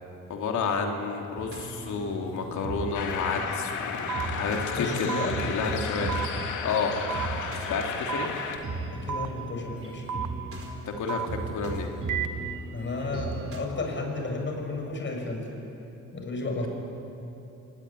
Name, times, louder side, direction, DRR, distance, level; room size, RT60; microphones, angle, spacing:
voice 1, 0.3-5.1 5.4-7.0 7.4-8.3 10.8-11.9, left 5 dB, 75° left, 2 dB, 3.3 m, -31 dB
sound 1, 1.4-13.6, right 2 dB, 45° right, 4.1 m, -37 dB
sound 2, 2.9-8.6, left 6 dB, 90° left, 2.4 m, -34 dB
sound 3, 4.1-4.3 5.1-5.3 6.1-6.3 7.1-7.3 8.1-8.3 9.1-9.3 10.1-10.3 11.1-11.3 12.1-12.3, right 8 dB, 85° right, 1.7 m, -30 dB
voice 2, 4.8-5.4 8.9-10.1 12.7-15.6 16.1-16.7, left 3 dB, 40° left, 2 dB, 6.7 m, -32 dB
25.5 x 19.0 x 9.9 m, 2.9 s
cardioid pair, 90°, 30 cm